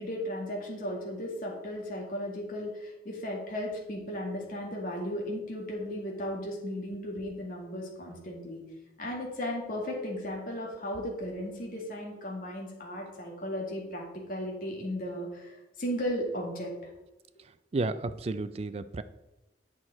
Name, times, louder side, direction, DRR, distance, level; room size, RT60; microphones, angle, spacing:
voice 1, 0.0-8.6 9.0-16.7, equal, 50° left, -1 dB, 2.0 m, -35 dB
voice 2, 17.7-19.0, right 3 dB, 35° right, 13 dB, 0.4 m, -32 dB
8.4 x 6.2 x 4.2 m, 0.98 s
head